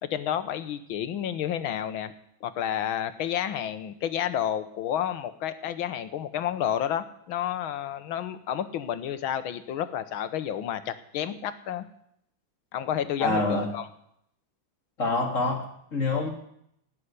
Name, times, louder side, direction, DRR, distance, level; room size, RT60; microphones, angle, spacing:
voice 1, 0.0-2.1 2.4-11.8 12.7-13.8, left 10 dB, 90° left, 12 dB, 1.8 m, -30 dB
voice 2, 13.2-13.7 15.0-16.3, left 2 dB, 40° left, 2 dB, 2.5 m, -26 dB
17.0 x 6.6 x 9.7 m, 0.72 s
omnidirectional pair, 2.2 m